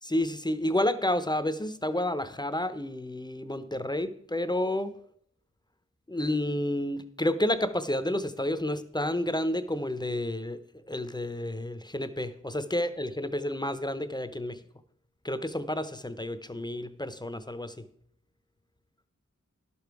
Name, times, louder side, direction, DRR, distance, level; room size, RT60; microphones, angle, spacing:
voice 1, 0.0-4.9 6.1-10.6 10.9-14.6 15.2-17.8, left 1 dB, 15° left, 12 dB, 0.6 m, -30 dB
11.0 x 7.0 x 4.7 m, 0.67 s
cardioid pair, 50°, 31 cm